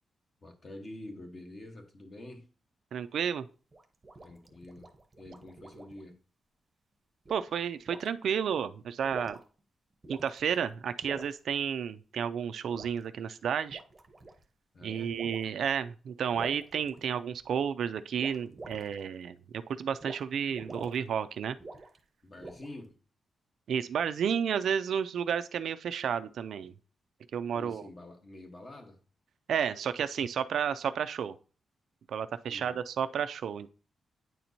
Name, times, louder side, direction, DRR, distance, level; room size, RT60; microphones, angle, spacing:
voice 1, 0.4-2.5 4.2-4.9 5.2-6.1 14.7-15.1 22.2-23.0 27.5-29.0 32.5-32.8, left 1 dB, 30° left, 1.0 m, -47 dB
voice 2, 2.9-3.5 7.3-9.4 10.1-13.8 14.8-21.6 23.7-26.7 27.3-27.8 29.5-31.3 32.1-33.7, right 8 dB, 65° right, 0.3 m, -32 dB
sound 1, 3.7-6.0 7.3-7.5 7.9-8.1 8.9-9.6 10.0-10.6 11.0-11.3 12.7-13.0 13.6-14.4 15.1-15.5 16.3-17.5 18.2-19.0 20.0-20.2 20.5-21.0 21.6-22.0 22.4-22.9, right 2 dB, 20° right, 0.8 m, -46 dB
9.2 x 4.4 x 2.6 m
wide cardioid pair, 160°, 0 cm